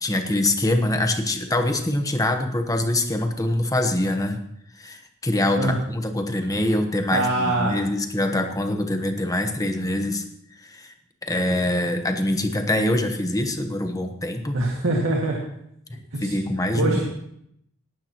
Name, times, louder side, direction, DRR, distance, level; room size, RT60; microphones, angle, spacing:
voice 1, 0.0-4.4 4.8-10.2 10.6-10.9 11.2-14.6 15.9-17.0, left 1 dB, 15° left, 5 dB, 1.1 m, -24 dB
voice 2, 7.1-7.8 14.5-15.4 16.1-16.3 16.7-17.0, right 2 dB, 70° right, -2 dB, 2.1 m, -23 dB
18.0 x 11.5 x 3.0 m, 0.75 s
head